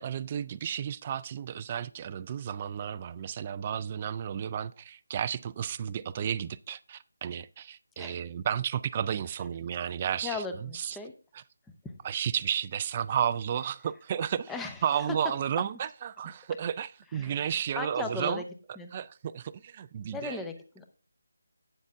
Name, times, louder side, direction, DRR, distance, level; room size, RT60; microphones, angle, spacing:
voice 1, 0.0-11.0 11.3-11.4 12.0-14.5 14.8-18.4 18.9-20.4, right 9 dB, 25° right, 0.3 m, -32 dB
voice 2, 10.2-11.1 11.8-11.9 14.5-14.8 17.1-18.4 18.8-18.9 20.1-20.9, left 3 dB, 5° left, 0.8 m, -37 dB
8.7 x 7.3 x 3.5 m
figure-of-eight pair, 160°, 0 cm